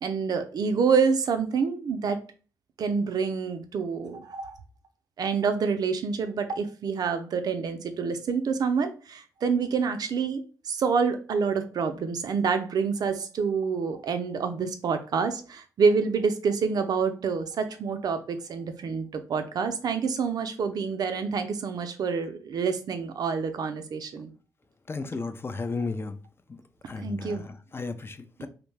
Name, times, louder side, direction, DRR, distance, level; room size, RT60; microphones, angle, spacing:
voice 1, 0.0-2.2 2.8-4.6 5.2-24.3 27.0-27.4 28.4-28.5, right 5 dB, 65° right, 0.4 m, -27 dB
voice 2, 24.9-26.1 26.9-28.5, left 3 dB, 35° left, 0.4 m, -34 dB
2.6 x 2.1 x 3.1 m
supercardioid pair, 55°, 7 cm